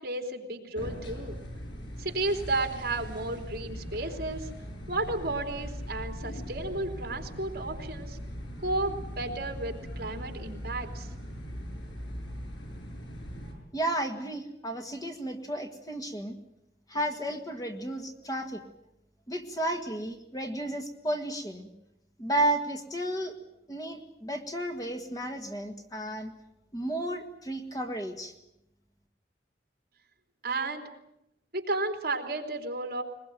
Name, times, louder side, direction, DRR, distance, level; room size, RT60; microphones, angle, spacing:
voice 1, 0.0-1.4 2.0-4.5 4.9-8.2 8.6-11.1 30.4-30.9 31.5-33.0, right 2 dB, 55° right, 4 dB, 3.3 m, -33 dB
sound 1, 0.7-13.5, equal, 80° left, 7.4 m, -40 dB
voice 2, 13.7-16.4 16.9-18.6 19.3-21.7 22.2-23.3 23.7-26.3 26.7-28.3, right 1 dB, 20° left, 4 dB, 1.7 m, -33 dB
21.5 x 21.5 x 9.1 m, 0.86 s
head